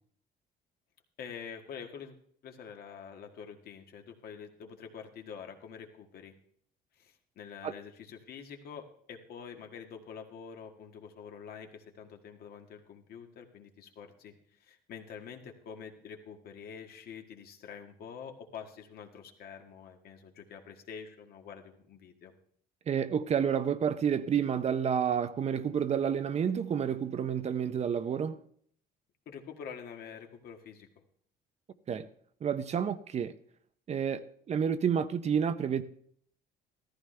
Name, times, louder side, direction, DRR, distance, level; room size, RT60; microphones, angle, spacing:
voice 1, 1.2-2.1 2.4-6.3 7.0-14.3 14.6-22.3 29.3-31.0, left 7 dB, 65° left, 1.8 m, -46 dB
voice 2, 22.9-28.4 31.9-32.1 32.4-33.3 33.9-34.2 34.5-35.8, right 7 dB, 40° right, 0.7 m, -29 dB
14.0 x 14.0 x 3.3 m
cardioid pair, 110°, 17 cm